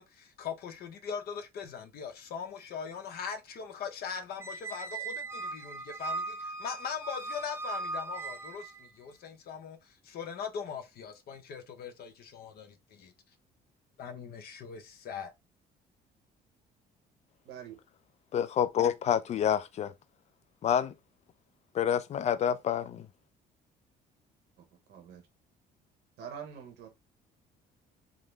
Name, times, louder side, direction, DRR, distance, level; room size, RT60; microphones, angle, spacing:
voice 1, 0.0-13.1 14.0-15.3, left 7 dB, 65° left, 0.9 m, -41 dB
Squeak, 4.4-8.9, right 3 dB, 15° right, 0.5 m, -38 dB
voice 2, 17.4-17.8 24.9-25.2 26.2-26.9, right 8 dB, 80° right, 1.1 m, -44 dB
voice 3, 18.3-19.9 20.6-20.9 21.7-23.1, left 9 dB, 40° left, 0.4 m, -28 dB
3.7 x 2.1 x 3.2 m
cardioid pair, 110°, 17 cm